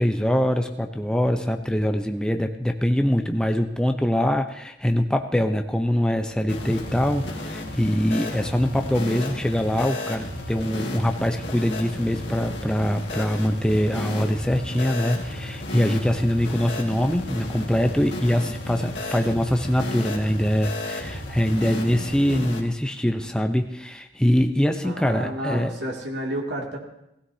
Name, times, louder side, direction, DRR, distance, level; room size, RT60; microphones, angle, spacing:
voice 1, 0.0-25.7, equal, 5° left, 5 dB, 0.6 m, -23 dB
sound 1, 6.5-22.6, left 1 dB, 85° left, 1.8 m, -33 dB
voice 2, 24.8-26.8, right 1 dB, 75° right, -1 dB, 2.4 m, -30 dB
16.0 x 16.0 x 2.8 m, 0.85 s
head